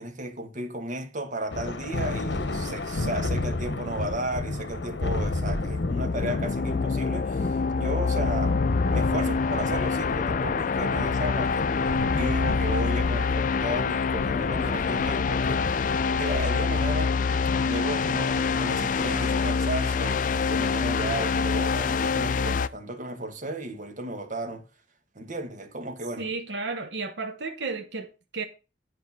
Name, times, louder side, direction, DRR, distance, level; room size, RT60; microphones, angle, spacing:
voice 1, 0.0-8.6 8.9-17.2 17.6-24.6 25.1-26.3, right 1 dB, 45° right, 1.7 m, -34 dB
Thunder, 1.5-19.2, left 2 dB, 80° left, 0.9 m, -32 dB
sound 1, 5.6-22.7, left 5 dB, 50° left, 0.4 m, -26 dB
voice 2, 26.2-28.4, right 4 dB, 80° right, 1.0 m, -33 dB
8.7 x 5.1 x 5.9 m
head